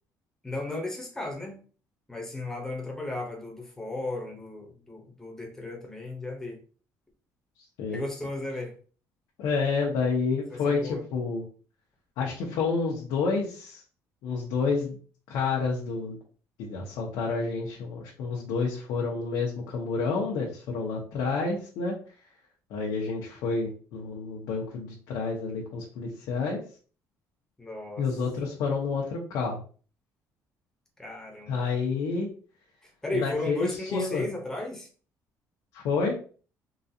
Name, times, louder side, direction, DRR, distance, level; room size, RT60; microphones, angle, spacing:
voice 1, 0.4-1.6 2.1-6.6 7.9-8.7 10.5-11.0 27.6-28.0 31.0-31.8 33.0-34.9, left 2 dB, 10° left, 0.7 m, -34 dB
voice 2, 9.4-11.4 12.2-13.8 14.2-15.0 15.3-16.2 16.6-21.9 22.7-26.6 28.0-29.6 31.5-32.3 33.1-34.2 35.7-36.2, left 4 dB, 90° left, 0.8 m, -29 dB
3.9 x 2.4 x 2.7 m
cardioid pair, 170°, 7 cm